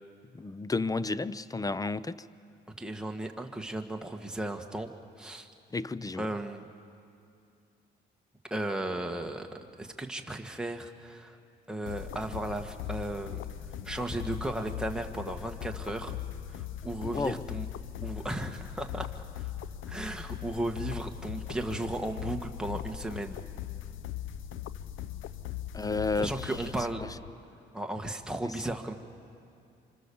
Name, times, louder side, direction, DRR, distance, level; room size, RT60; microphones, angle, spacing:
voice 1, 0.3-2.3 5.7-6.3 17.0-17.5 25.7-26.6 28.4-28.5, left 3 dB, 20° left, 0.6 m, -32 dB
voice 2, 2.8-4.9 5.2-5.5 6.2-6.6 8.5-11.4 11.7-13.4 13.8-16.2 16.5-17.7 18.0-19.5 19.9-23.4 26.2-27.1 27.7-28.9, right 1 dB, 5° right, 1.7 m, -35 dB
sound 1, 11.9-27.3, left 11 dB, 85° left, 0.6 m, -40 dB
26.0 x 25.5 x 7.1 m
cardioid pair, 90°, 20 cm